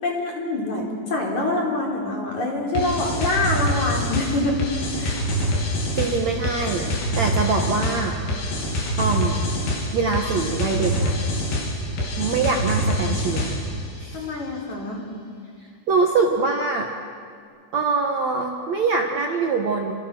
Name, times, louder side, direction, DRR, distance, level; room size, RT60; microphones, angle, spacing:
voice 1, 0.0-4.6 5.0-5.2 14.1-15.0, left 2 dB, 40° left, -1 dB, 5.1 m, -25 dB
sound 1, 2.8-13.8, equal, 60° left, 5.2 m, -25 dB
voice 2, 5.9-8.2 9.0-9.5 9.9-11.1 12.2-13.6 14.0-14.3 15.9-16.9 17.7-19.9, right 4 dB, 75° right, 2 dB, 1.6 m, -23 dB
29.0 x 27.5 x 6.2 m, 2.2 s
omnidirectional pair, 5.5 m